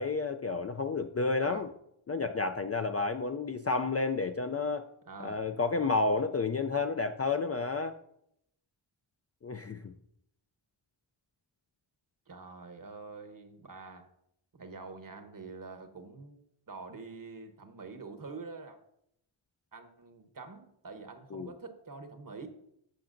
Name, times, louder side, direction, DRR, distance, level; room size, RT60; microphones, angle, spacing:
voice 1, 0.0-1.7 2.1-4.8 5.2-8.0 9.4-9.9 21.3-21.5, left 3 dB, 35° left, 0.4 m, -31 dB
voice 2, 5.1-5.4 12.3-14.1 14.5-16.4 16.7-18.8 19.7-22.5, right 4 dB, 40° right, 1.0 m, -46 dB
11.5 x 7.0 x 2.6 m
wide cardioid pair, 80°, 49 cm